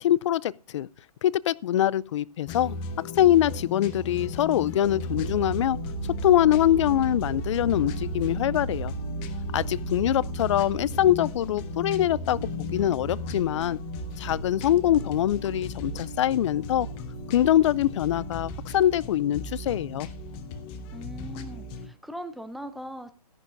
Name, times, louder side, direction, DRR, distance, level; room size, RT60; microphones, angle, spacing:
voice 1, 0.0-0.9 1.2-2.7 3.2-5.8 6.2-8.9 9.5-13.8 14.2-16.9 17.3-20.1, left 12 dB, 50° left, 0.4 m, -23 dB
sound 1, 2.5-21.9, left 3 dB, 25° left, 1.0 m, -37 dB
sound 2, 4.2-20.3, right 4 dB, 80° right, 4.2 m, -37 dB
voice 2, 20.9-23.1, equal, ahead, 0.6 m, -40 dB
13.5 x 10.5 x 2.5 m
hypercardioid pair, 140°, 21 cm